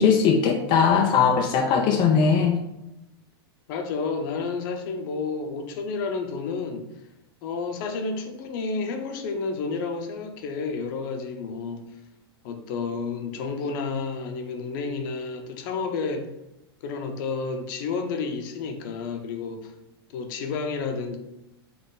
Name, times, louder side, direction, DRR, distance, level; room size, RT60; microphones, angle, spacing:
voice 1, 0.0-2.6, left 6 dB, 35° left, 2 dB, 0.5 m, -20 dB
voice 2, 3.7-6.9 7.4-11.8 12.4-16.3 16.8-19.7 20.1-21.2, left 4 dB, 55° left, 5 dB, 0.8 m, -30 dB
4.2 x 3.3 x 3.8 m, 0.87 s
hypercardioid pair, 120°, 13 cm